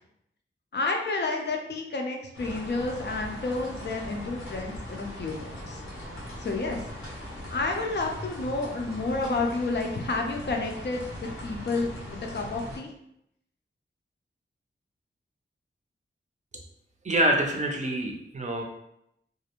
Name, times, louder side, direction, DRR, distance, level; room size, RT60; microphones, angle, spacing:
voice 1, 0.7-5.8 6.4-6.8 7.5-12.9, left 3 dB, 55° left, 2 dB, 0.5 m, -30 dB
sound 1, 2.3-12.8, equal, 85° left, 0.8 m, -40 dB
voice 2, 17.0-18.6, right 1 dB, 35° right, 1 dB, 0.5 m, -26 dB
2.4 x 2.0 x 2.8 m, 0.78 s
wide cardioid pair, 70°, 21 cm